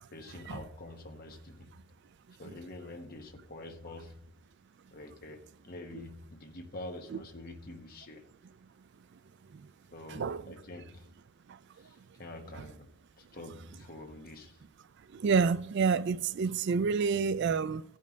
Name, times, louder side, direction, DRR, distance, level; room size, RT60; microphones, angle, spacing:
voice 1, 0.1-1.7 2.4-4.3 4.9-8.2 9.9-11.1 11.7-12.9 13.2-14.6, left 2 dB, 45° left, 1.1 m, -46 dB
voice 2, 10.1-10.5 11.5-11.6 12.5-12.6 15.1-17.8, right 5 dB, 55° right, 0.4 m, -29 dB
15.5 x 5.4 x 5.2 m
head